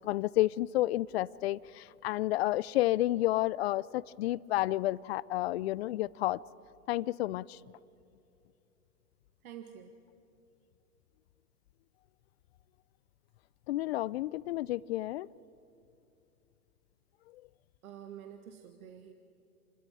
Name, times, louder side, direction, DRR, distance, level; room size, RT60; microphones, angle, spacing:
voice 1, 0.0-6.4 6.9-7.6 13.7-15.3, left 16 dB, 45° left, 22 dB, 0.5 m, -31 dB
voice 2, 9.4-9.9 17.8-19.1, right 9 dB, 70° right, 6 dB, 1.7 m, -48 dB
28.5 x 13.0 x 8.7 m, 2.6 s
hypercardioid pair, 120°, 44 cm